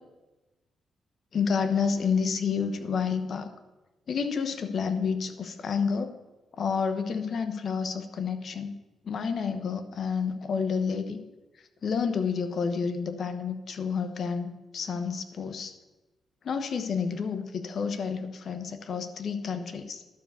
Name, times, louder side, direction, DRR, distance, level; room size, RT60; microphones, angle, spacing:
voice 1, 1.3-3.5 4.1-6.1 6.6-8.8 9.0-11.2 11.8-15.7 16.4-20.0, left 6 dB, 60° left, 9 dB, 1.0 m, -29 dB
12.0 x 4.9 x 6.9 m, 1.1 s
cardioid pair, 70°, 0 cm